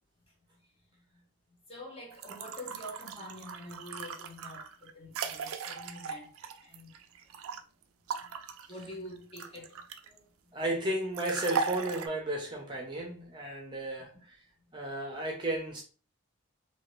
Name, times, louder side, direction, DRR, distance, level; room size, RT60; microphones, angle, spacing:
voice 1, 1.7-6.9 8.2-8.3 8.7-9.8 14.0-14.1, left 1 dB, 25° left, 0.9 m, -46 dB
sound 1, 2.1-7.6 8.1-10.2 11.1-12.1, right 5 dB, 70° right, 0.4 m, -38 dB
voice 2, 10.5-14.4 14.7-15.8, right 1 dB, 20° right, 0.6 m, -34 dB
2.7 x 2.7 x 3.1 m
head